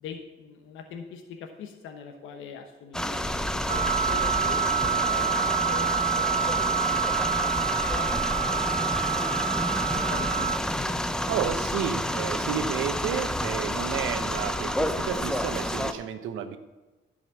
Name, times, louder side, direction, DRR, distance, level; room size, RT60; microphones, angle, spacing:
voice 1, 0.0-7.5 7.8-9.6 9.9-11.0, left 6 dB, 85° left, 4 dB, 1.0 m, -43 dB
sound 1, 2.9-15.9, left 1 dB, 5° left, 0.6 m, -29 dB
Wind instrument woodwind instrument, 3.7-10.6, right 8 dB, 40° right, 0.6 m, -27 dB
voice 2, 11.3-16.6, right 8 dB, 90° right, 9 dB, 0.8 m, -31 dB
11.0 x 5.2 x 7.0 m, 1.2 s
cardioid pair, 90°, 20 cm